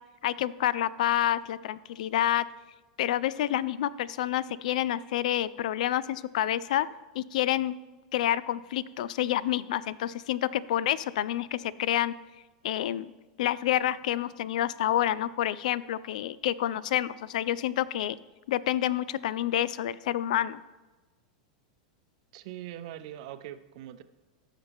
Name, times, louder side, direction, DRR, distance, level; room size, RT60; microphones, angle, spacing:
voice 1, 0.2-2.4 3.0-6.9 7.1-7.7 8.1-12.1 12.6-13.1 13.4-18.2 18.5-20.6, left 12 dB, 75° left, 19 dB, 0.3 m, -28 dB
voice 2, 22.3-24.0, right 12 dB, 60° right, 12 dB, 0.6 m, -42 dB
15.0 x 5.8 x 3.5 m, 1.2 s
supercardioid pair, 135°, 4 cm